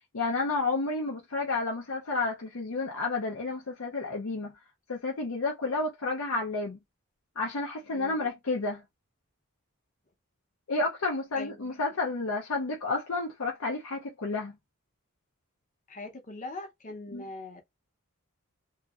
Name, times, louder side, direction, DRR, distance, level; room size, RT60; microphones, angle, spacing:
voice 1, 0.1-4.5 4.9-6.8 7.4-8.8 10.7-14.5 17.1-17.2, left 3 dB, 75° left, 0.7 m, -31 dB
voice 2, 7.9-8.3 11.3-11.7 15.9-17.6, left 2 dB, 35° left, 0.8 m, -41 dB
2.9 x 2.6 x 2.4 m
head